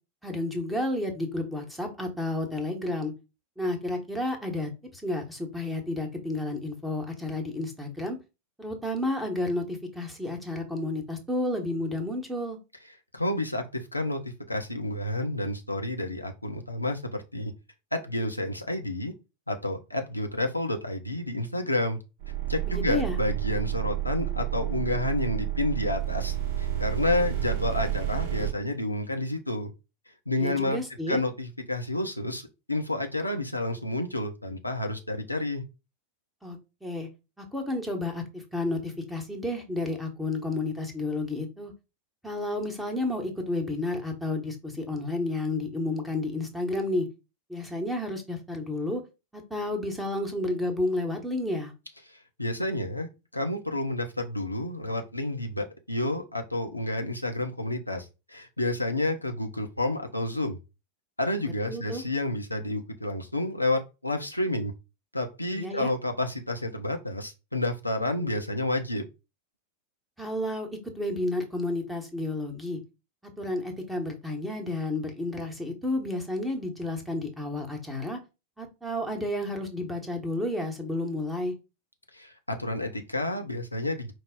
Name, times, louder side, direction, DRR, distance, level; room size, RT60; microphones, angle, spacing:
voice 1, 0.2-3.1 3.6-8.2 8.6-12.6 22.7-23.2 30.4-31.2 36.4-37.1 37.4-41.7 42.2-47.1 47.5-49.0 49.3-51.7 61.7-62.0 65.5-65.9 70.2-72.8 73.4-78.2 78.6-81.5, left 2 dB, 5° right, 1.0 m, -31 dB
voice 2, 13.1-17.5 17.9-19.1 19.5-22.0 22.5-29.7 30.3-30.8 31.1-35.6 52.1-60.6 61.2-64.7 65.1-69.0 82.1-84.1, left 1 dB, 85° left, 0.5 m, -30 dB
sound 1, 22.2-28.5, right 13 dB, 50° right, 0.8 m, -30 dB
4.6 x 2.0 x 3.7 m
figure-of-eight pair, 90°, 0 cm